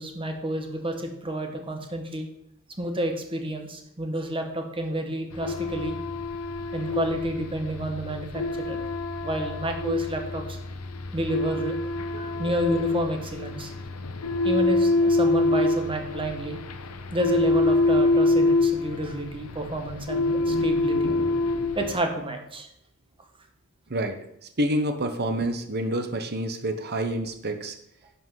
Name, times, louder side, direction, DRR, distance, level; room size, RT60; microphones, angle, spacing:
voice 1, 0.0-2.3 2.8-6.0 6.7-8.8 9.2-10.6 11.1-11.8 12.1-13.7 14.4-16.6 17.1-21.1 21.7-22.7, right 1 dB, 25° right, 4 dB, 1.4 m, -30 dB
sound 1, 5.3-22.0, left 2 dB, 85° left, 0.9 m, -25 dB
voice 2, 24.6-27.8, right 1 dB, 50° right, 7 dB, 1.1 m, -28 dB
11.0 x 5.7 x 5.8 m, 0.77 s
head